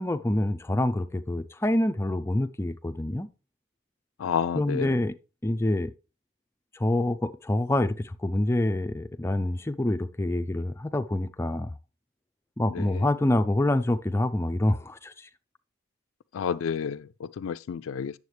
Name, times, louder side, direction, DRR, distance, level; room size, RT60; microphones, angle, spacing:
voice 1, 0.0-3.3 4.5-5.1 5.4-5.9 6.7-11.7 12.6-15.3, left 1 dB, 15° left, 0.4 m, -26 dB
voice 2, 4.2-5.0 12.7-13.1 16.3-18.1, left 7 dB, 85° left, 0.3 m, -30 dB
9.5 x 7.1 x 3.2 m
head